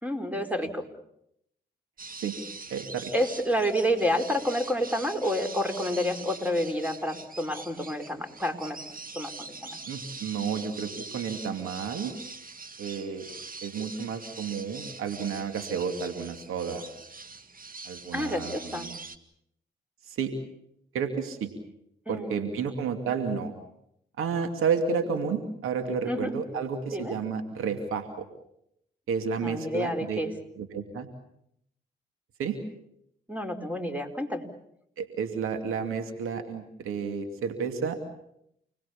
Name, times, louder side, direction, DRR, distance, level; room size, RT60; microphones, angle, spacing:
voice 1, 0.0-0.9 3.1-8.8 9.1-9.8 18.1-18.9 22.1-22.4 26.0-26.3 26.9-27.1 29.4-30.3 33.3-34.4, equal, 5° right, 5 dB, 4.7 m, -29 dB
sound 1, 2.0-19.2, right 3 dB, 40° right, 2.0 m, -43 dB
voice 2, 2.7-3.1 9.9-12.1 12.8-13.2 13.6-16.9 17.8-19.0 20.1-20.3 20.9-21.5 22.1-23.5 24.2-28.2 29.1-30.2 30.5-31.1 32.4-32.6 35.0-38.0, right 6 dB, 85° right, 7 dB, 2.6 m, -31 dB
30.0 x 20.5 x 7.2 m, 0.75 s
supercardioid pair, 40°, 21 cm